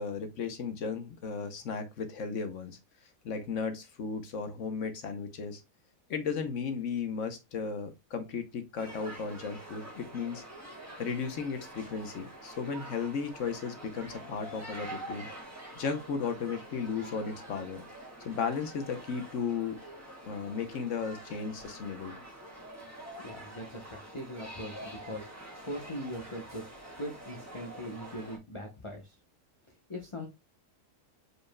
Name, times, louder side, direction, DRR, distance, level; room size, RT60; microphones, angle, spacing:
voice 1, 0.0-2.8 3.2-5.6 6.1-10.4 11.0-15.3 15.8-17.8 18.2-19.8 20.3-22.1, left 5 dB, 55° left, 1.0 m, -35 dB
sound 1, 8.8-28.4, right 1 dB, 10° right, 1.6 m, -46 dB
voice 2, 23.2-26.6 27.0-29.1 29.9-30.3, equal, 25° left, 0.7 m, -41 dB
5.0 x 4.8 x 2.2 m
omnidirectional pair, 1.8 m